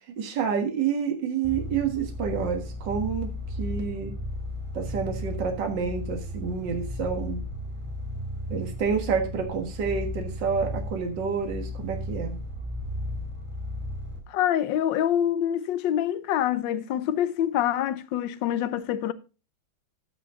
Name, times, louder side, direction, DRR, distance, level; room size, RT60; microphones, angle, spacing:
voice 1, 0.2-3.3 3.6-4.1 4.7-7.4 8.5-12.4, right 6 dB, 60° right, 2.2 m, -28 dB
sound 1, 1.4-14.2, equal, 25° right, 2.6 m, -34 dB
voice 2, 14.3-19.1, left 10 dB, 70° left, 1.4 m, -26 dB
14.0 x 6.1 x 3.8 m
omnidirectional pair, 2.2 m